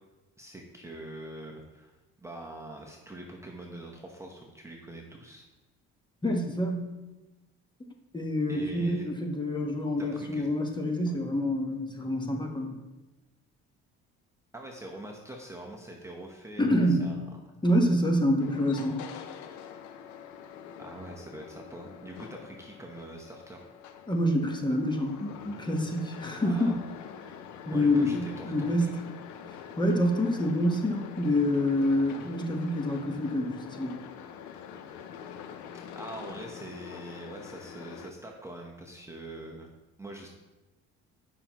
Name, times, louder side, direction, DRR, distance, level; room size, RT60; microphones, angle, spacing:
voice 1, 0.4-5.5 8.5-9.1 10.0-10.5 11.1-11.2 14.5-17.3 20.8-23.7 26.4-26.8 27.7-29.0 29.3-29.4 35.9-39.7 40.0-40.3, right 1 dB, 10° right, 0 dB, 1.0 m, -44 dB
voice 2, 6.2-6.8 8.1-12.7 16.6-17.1 17.6-19.0 24.1-26.7 27.7-29.0 29.8-33.9, left 1 dB, 15° left, 2 dB, 1.2 m, -27 dB
sound 1, 18.4-38.1, left 8 dB, 80° left, 0.7 m, -45 dB
9.5 x 5.7 x 3.0 m, 1.1 s
cardioid pair, 95°, 29 cm